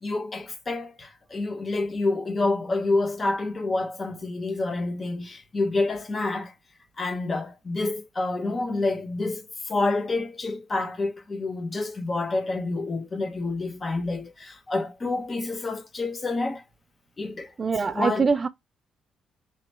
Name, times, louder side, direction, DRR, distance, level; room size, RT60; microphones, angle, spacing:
voice 1, 0.0-6.5 7.0-16.6 17.2-17.5 17.9-18.2, left 2 dB, 25° left, 0.7 m, -28 dB
voice 2, 17.6-18.5, right 5 dB, 30° right, 0.3 m, -23 dB
3.1 x 2.8 x 4.3 m
cardioid pair, 130°, 0 cm